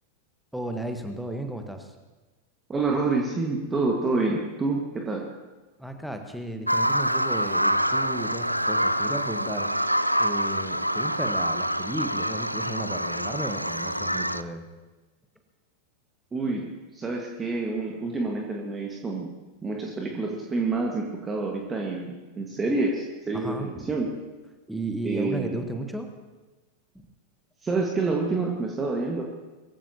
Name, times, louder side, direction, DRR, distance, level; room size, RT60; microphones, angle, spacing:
voice 1, 0.5-1.9 5.8-9.7 10.2-14.6 23.3-23.9 24.7-26.1, right 1 dB, ahead, 5 dB, 1.3 m, -34 dB
voice 2, 2.7-5.2 16.3-16.7 16.9-19.3 19.6-24.1 25.0-25.6 27.6-29.2, right 3 dB, 15° right, 0 dB, 1.7 m, -28 dB
Bird vocalization bird call bird song, 6.7-14.4, equal, 90° right, 0.4 m, -26 dB
22.0 x 15.0 x 2.9 m, 1.2 s
figure-of-eight pair, 90°, 0 cm